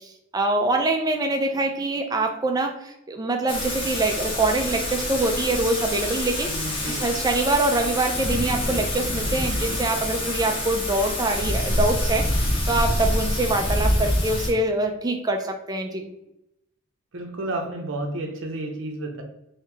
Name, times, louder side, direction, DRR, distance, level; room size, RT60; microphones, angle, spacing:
voice 1, 0.0-6.5 6.8-12.3 12.6-16.1, right 2 dB, 20° right, 3 dB, 0.3 m, -24 dB
Thunder / Rain, 3.5-14.5, left 1 dB, 25° left, 0.7 m, -26 dB
voice 2, 6.4-7.1 17.1-19.2, right 2 dB, 65° right, 3 dB, 0.6 m, -31 dB
2.9 x 2.7 x 3.3 m, 0.84 s
head